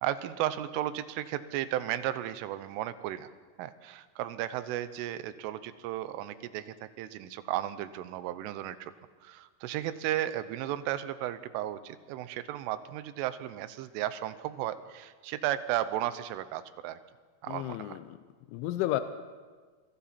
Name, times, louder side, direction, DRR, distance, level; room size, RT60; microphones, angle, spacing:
voice 1, 0.0-3.3 3.6-8.9 9.2-17.0 17.4-18.0, right 13 dB, 85° right, 13 dB, 3.4 m, -34 dB
voice 2, 17.5-18.2 18.5-19.0, left 15 dB, 80° left, 10 dB, 3.0 m, -32 dB
28.5 x 23.0 x 4.3 m, 1.4 s
omnidirectional pair, 5.6 m